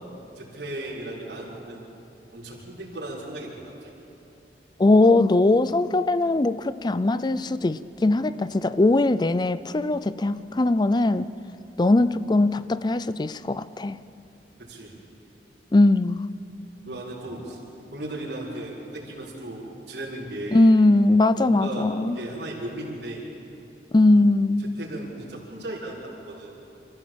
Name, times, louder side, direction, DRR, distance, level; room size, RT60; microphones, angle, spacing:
voice 1, 0.3-1.9 2.3-3.9 14.6-14.9 16.8-17.6 17.9-19.6 19.9-20.7 21.4-23.2 24.6-26.5, right 1 dB, 70° right, -6 dB, 4.5 m, -36 dB
voice 2, 4.8-11.3 11.8-14.0 15.7-16.2 20.5-22.2 23.9-24.7, left 2 dB, 25° left, 15 dB, 0.4 m, -20 dB
26.5 x 14.0 x 7.5 m, 2.9 s
head